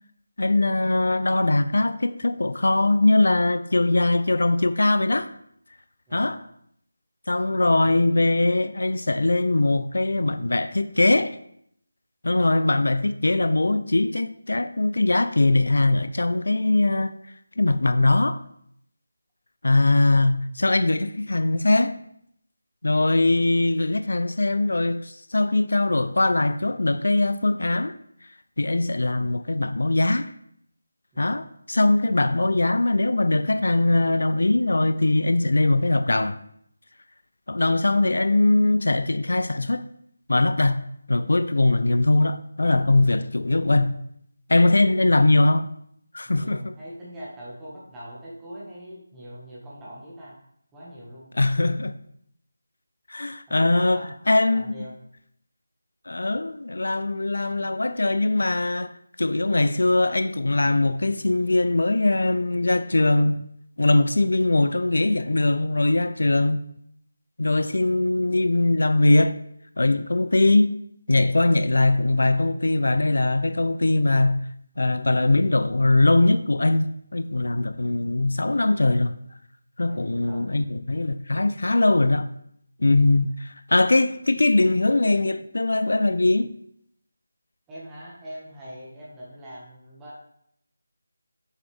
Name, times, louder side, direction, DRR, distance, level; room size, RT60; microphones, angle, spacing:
voice 1, 0.4-5.3 6.1-6.4 7.3-11.4 12.2-17.1 17.6-18.4 19.6-22.0 22.8-28.0 28.6-30.3 31.2-36.4 37.5-39.9 40.3-40.8 41.1-44.0 44.5-45.7 46.1-46.7 51.3-52.0 53.1-54.7 56.1-58.9 59.2-63.4 63.8-66.6 67.4-69.4 69.8-70.7 71.1-74.5 74.8-79.1 79.8-82.3 82.8-86.5, left 2 dB, 70° left, 0.4 m, -21 dB
voice 2, 6.1-6.4 31.1-31.4 44.7-44.9 46.2-50.4 50.7-51.3 53.5-54.1 54.5-54.9 79.8-80.5 82.8-83.1 87.7-90.2, equal, 10° right, 1.7 m, -42 dB
6.9 x 6.1 x 3.5 m
figure-of-eight pair, 165°, 0 cm